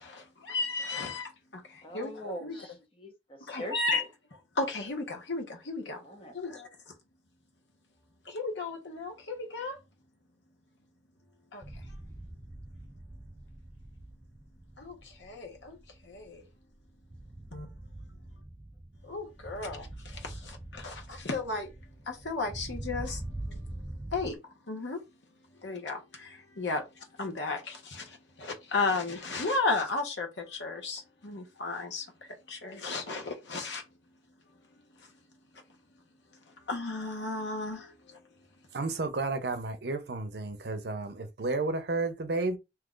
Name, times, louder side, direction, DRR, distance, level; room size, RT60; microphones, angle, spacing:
voice 1, 0.0-2.1 2.4-2.5 3.5-4.0 4.5-6.0 6.3-6.9 8.2-9.8 11.5-11.6 14.8-15.8 16.0-16.5 17.5-17.7 19.0-21.7 22.1-23.2 23.5-23.7 24.1-24.4 24.7-25.0 25.6-33.8 36.7-38.2, left 3 dB, 90° left, 1.0 m, -34 dB
voice 2, 1.8-4.1 6.0-6.4, equal, 30° left, 0.8 m, -42 dB
sound 1, 11.6-24.4, right 1 dB, 15° right, 0.3 m, -44 dB
voice 3, 38.7-42.6, right 3 dB, 65° right, 0.6 m, -32 dB
2.9 x 2.4 x 3.7 m
head